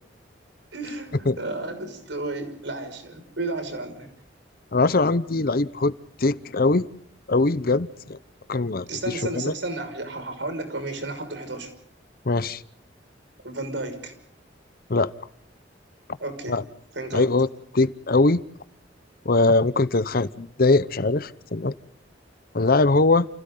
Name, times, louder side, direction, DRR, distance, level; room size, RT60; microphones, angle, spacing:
voice 1, 0.7-4.1 8.9-11.7 13.4-14.1 16.2-16.6 16.9-17.3, right 2 dB, 75° right, 6.0 m, -32 dB
voice 2, 4.7-5.9 6.2-6.9 7.3-8.2 8.5-8.9 9.3-9.5 12.3-12.6 14.9-15.1 16.5-16.6 17.1-17.5 17.7-18.4 19.2-21.7 22.5-23.3, left 3 dB, 50° left, 0.8 m, -21 dB
29.5 x 29.5 x 3.9 m
head